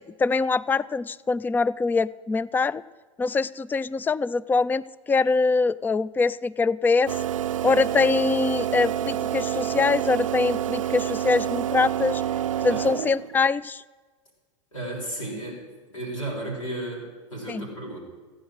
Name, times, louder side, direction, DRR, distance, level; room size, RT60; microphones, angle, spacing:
voice 1, 0.0-2.8 3.2-7.1 7.6-12.2 12.6-13.8 17.5-17.7, left 4 dB, 10° left, 20 dB, 0.4 m, -23 dB
sound 1, 7.1-13.4, right 10 dB, 80° right, 0.4 m, -28 dB
voice 2, 14.7-15.6 15.9-18.0, right 1 dB, 85° left, -3 dB, 6.4 m, -34 dB
15.5 x 9.2 x 8.1 m, 1.4 s
hypercardioid pair, 95°, 17 cm